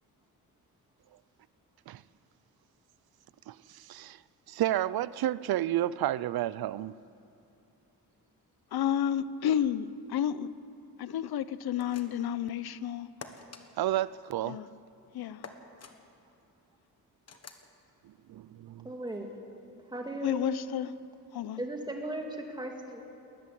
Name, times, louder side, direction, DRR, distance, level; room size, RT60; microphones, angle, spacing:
voice 1, 3.5-4.2 4.5-6.9 13.8-14.6 18.3-18.9, right 13 dB, 80° right, 0.5 m, -31 dB
voice 2, 8.7-10.5 11.0-13.1 14.5-14.7 15.1-15.4 20.2-20.9 21.3-21.6, left 9 dB, 90° left, 0.7 m, -31 dB
sound 1, 11.8-12.3 13.2-13.6 15.4-15.9 17.3-17.7, left 5 dB, 45° left, 1.4 m, -47 dB
voice 3, 18.8-19.3 19.9-20.4 21.6-23.0, right 1 dB, 10° right, 2.1 m, -36 dB
20.5 x 13.5 x 9.9 m
wide cardioid pair, 180°, 37 cm